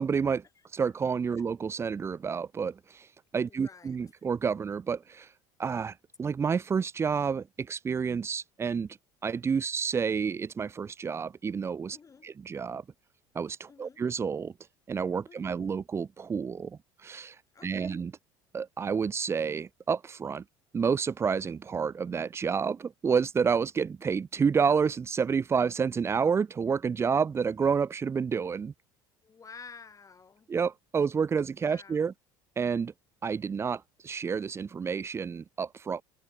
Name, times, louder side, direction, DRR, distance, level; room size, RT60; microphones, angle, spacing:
voice 1, 0.0-0.4 0.7-3.1 3.3-5.3 5.6-8.9 9.2-12.0 12.2-12.8 13.3-14.5 14.9-17.4 17.6-18.1 18.5-20.4 20.7-28.7 30.5-32.1 32.6-32.9 33.2-36.0, right 6 dB, 20° right, 0.4 m, -29 dB
voice 2, 3.5-4.1 11.9-12.3 13.7-14.0 15.3-15.6 17.5-18.0 29.2-30.5 31.6-32.1, left 5 dB, 30° left, 2.9 m, -51 dB
supercardioid pair, 85°, 12 cm